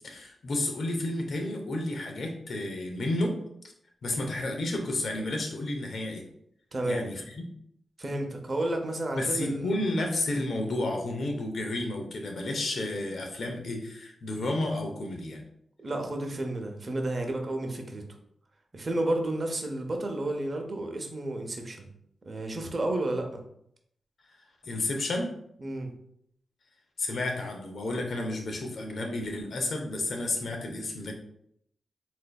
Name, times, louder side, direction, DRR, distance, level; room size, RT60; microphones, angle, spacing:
voice 1, 0.0-3.4 4.0-6.3 6.9-7.5 9.1-15.4 24.6-25.3 27.0-31.1, left 2 dB, 70° left, 3 dB, 0.7 m, -31 dB
voice 2, 6.7-7.1 8.0-9.8 15.8-18.0 18.7-21.9 22.2-23.4 25.6-25.9, right 1 dB, 45° right, 3 dB, 0.7 m, -31 dB
4.1 x 2.6 x 2.3 m, 0.71 s
cardioid pair, 65°, 0 cm